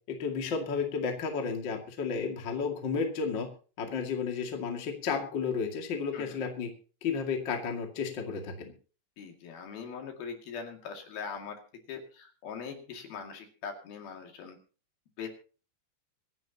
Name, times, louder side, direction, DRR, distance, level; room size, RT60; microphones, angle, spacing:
voice 1, 0.1-3.5 3.8-6.7 7.0-8.7, left 5 dB, 40° left, 3 dB, 1.8 m, -32 dB
voice 2, 9.2-11.6 11.9-14.6 15.2-15.3, left 6 dB, 55° left, 4 dB, 3.8 m, -41 dB
25.0 x 11.0 x 2.9 m, 0.37 s
omnidirectional pair, 5.4 m